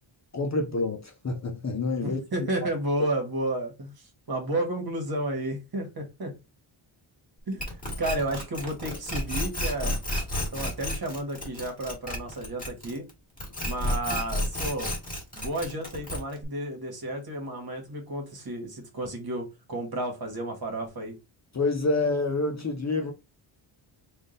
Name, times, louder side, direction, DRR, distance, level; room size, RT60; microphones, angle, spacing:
voice 1, 0.3-2.2 21.5-23.1, left 3 dB, 35° left, 0.6 m, -27 dB
voice 2, 2.0-6.3 7.5-7.7 8.0-9.9 10.5-13.0 13.6-15.0 15.3-21.1, right 1 dB, 45° right, 1.5 m, -32 dB
sound 1, 7.6-13.1 13.4-16.4, left 1 dB, 15° left, 1.6 m, -31 dB
3.6 x 2.6 x 3.8 m
wide cardioid pair, 165°, 50 cm